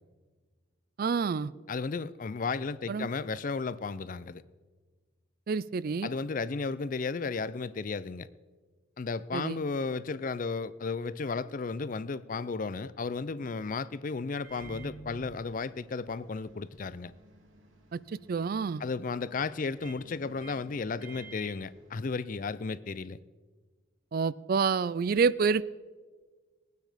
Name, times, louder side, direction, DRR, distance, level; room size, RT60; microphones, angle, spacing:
voice 1, 1.0-1.5 2.9-3.1 5.5-6.1 9.3-9.6 17.9-18.8 24.1-25.6, right 5 dB, 50° right, 19 dB, 0.3 m, -28 dB
voice 2, 1.7-4.4 6.0-8.3 9.0-17.1 18.8-23.2, left 4 dB, 45° left, 17 dB, 0.4 m, -34 dB
Microwave oven, 14.4-22.6, right 3 dB, 90° right, 2.6 m, -52 dB
20.5 x 9.3 x 5.0 m, 1.4 s
head